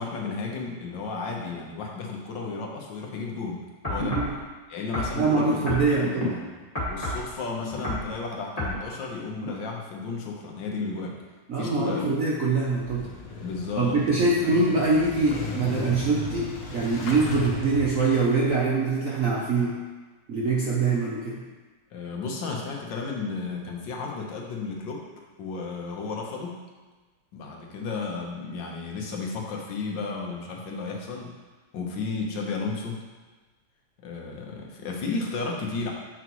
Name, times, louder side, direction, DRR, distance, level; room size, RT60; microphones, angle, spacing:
voice 1, 0.0-4.2 4.7-5.8 6.2-6.5 6.9-11.2 11.6-12.1 13.4-14.0 14.4-14.6 21.9-25.0 25.4-26.6 27.3-31.4 31.7-33.0 34.0-35.9, left 4 dB, 80° left, 0 dB, 1.7 m, -33 dB
sound 1, 3.8-4.4 4.9-6.3 6.7-7.3 7.7-8.1 8.6-8.8 9.4-9.5, left 1 dB, 20° left, 2.1 m, -30 dB
voice 2, 5.1-6.3 11.5-13.1 13.8-19.8 20.3-21.4, right 3 dB, 55° right, -3 dB, 1.0 m, -24 dB
Motorcycle / Engine starting, 12.6-18.5, left 3 dB, 60° left, 1.2 m, -36 dB
8.1 x 6.1 x 3.1 m, 1.3 s
omnidirectional pair, 2.0 m